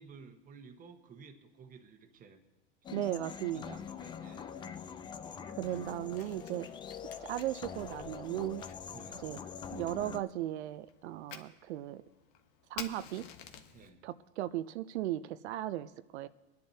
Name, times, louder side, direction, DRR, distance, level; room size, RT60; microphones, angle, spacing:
voice 1, 0.0-2.4 3.5-4.8 8.9-9.3 13.7-14.0, right 5 dB, 25° right, 6 dB, 1.2 m, -54 dB
sound 1, 2.8-10.2, left 7 dB, 15° left, 0.3 m, -44 dB
voice 2, 2.9-3.8 5.6-6.7 7.2-8.7 9.2-9.4 9.7-12.0 12.7-13.3 14.0-16.3, right 13 dB, 90° right, 12 dB, 0.5 m, -36 dB
Fire, 5.5-13.9, left 8 dB, 55° left, 1.3 m, -52 dB
25.0 x 10.5 x 2.8 m, 1.1 s
supercardioid pair, 130°, 32 cm